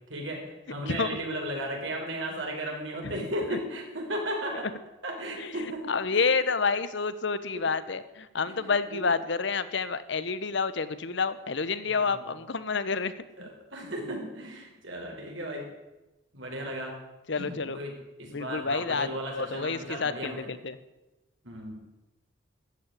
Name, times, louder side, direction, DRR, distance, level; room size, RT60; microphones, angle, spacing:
voice 1, 0.1-4.7 5.0-6.3 7.6-7.7 8.5-9.0 11.8-12.2 13.4-15.7 16.3-17.0 17.3-20.5 21.4-21.9, right 1 dB, 70° right, 1 dB, 4.7 m, -35 dB
voice 2, 0.9-1.2 3.0-3.1 5.4-13.1 13.4-13.5 17.3-17.8 18.3-19.1 19.3-20.8, left 4 dB, 60° left, 14 dB, 0.9 m, -29 dB
13.5 x 8.6 x 9.8 m, 1.0 s
head